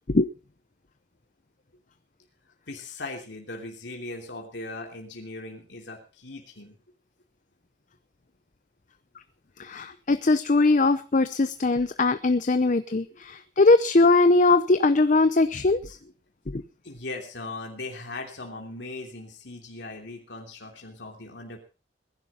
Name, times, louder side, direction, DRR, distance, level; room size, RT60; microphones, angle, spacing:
voice 1, 2.7-6.7 12.6-12.7 13.1-13.2 16.8-21.6, left 2 dB, 85° left, 1 dB, 3.1 m, -39 dB
voice 2, 9.6-16.0 16.5-16.6, left 3 dB, 45° left, 12 dB, 0.7 m, -21 dB
21.0 x 11.5 x 4.3 m, 0.35 s
head